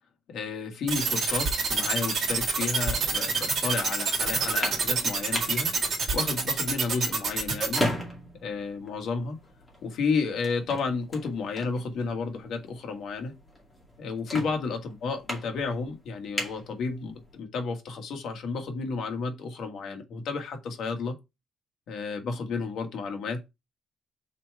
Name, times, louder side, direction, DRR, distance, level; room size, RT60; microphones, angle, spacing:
voice 1, 0.3-5.7 6.1-7.9 8.4-9.4 9.8-13.3 14.0-21.2 21.9-23.4, left 4 dB, 55° left, 1.6 m, -32 dB
sound 1, 0.9-7.8, right 5 dB, 40° right, 2.8 m, -26 dB
sound 2, 4.3-17.4, left 1 dB, 10° left, 2.2 m, -38 dB
5.7 x 4.6 x 4.7 m
cardioid pair, 180°, 0 cm